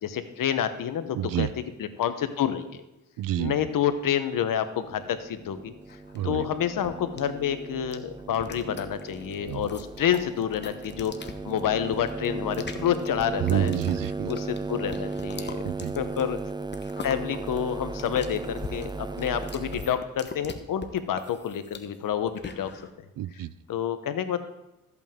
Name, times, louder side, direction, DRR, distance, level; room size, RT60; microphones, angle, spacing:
voice 1, 0.0-1.5 2.0-2.8 3.4-5.7 6.2-11.1 11.4-13.7 14.3-15.6 16.0-16.4 17.0-22.7 23.7-24.4, left 9 dB, 70° left, 10 dB, 1.1 m, -28 dB
voice 2, 1.1-1.5 3.2-3.6 6.1-6.5 9.4-9.8 13.4-14.3 15.6-16.0 23.2-23.5, right 12 dB, 75° right, 18 dB, 0.5 m, -28 dB
sound 1, 4.8-19.9, right 3 dB, 15° right, 0.4 m, -36 dB
sound 2, 5.9-22.9, left 4 dB, 30° left, 1.1 m, -43 dB
14.0 x 8.3 x 3.7 m, 0.95 s
cardioid pair, 75°, 33 cm